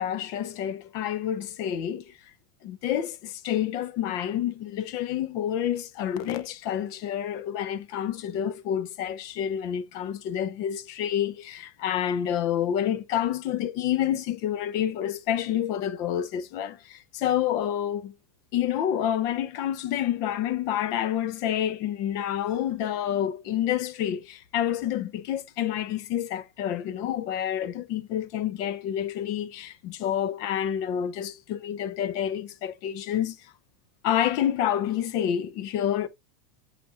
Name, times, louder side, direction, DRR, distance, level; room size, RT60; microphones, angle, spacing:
voice 1, 0.0-2.2 2.6-18.1 18.5-33.5 34.0-36.1, left 10 dB, 50° left, 0.8 m, -28 dB
9.1 x 5.8 x 2.5 m
supercardioid pair, 140°, 8 cm